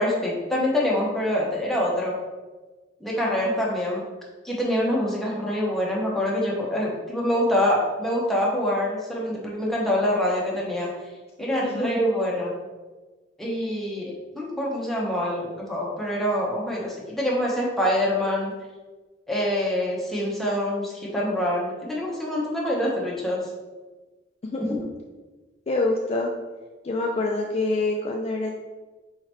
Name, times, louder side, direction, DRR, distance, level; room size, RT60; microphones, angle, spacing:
voice 1, 0.0-2.1 3.0-4.0 4.4-10.9 11.4-12.6 13.4-18.5 19.3-23.4, left 1 dB, ahead, -5 dB, 1.0 m, -25 dB
voice 2, 25.7-26.3 26.8-28.6, left 2 dB, 35° left, 0 dB, 0.4 m, -25 dB
4.4 x 3.8 x 3.0 m, 1.3 s
head